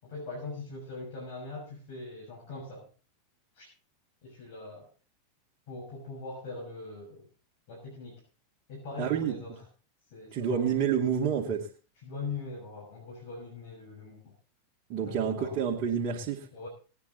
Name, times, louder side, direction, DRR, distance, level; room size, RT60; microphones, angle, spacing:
voice 1, 0.0-2.9 3.5-3.7 4.2-4.9 5.7-7.3 7.7-8.2 8.7-9.6 10.1-10.7 12.0-14.3 15.0-15.6 16.5-16.7, left 3 dB, 60° left, -2 dB, 6.5 m, -41 dB
voice 2, 9.0-9.4 10.3-11.7 14.9-16.5, right 7 dB, 50° right, -3 dB, 2.6 m, -28 dB
20.0 x 9.6 x 4.1 m, 0.37 s
hypercardioid pair, 95°, 0 cm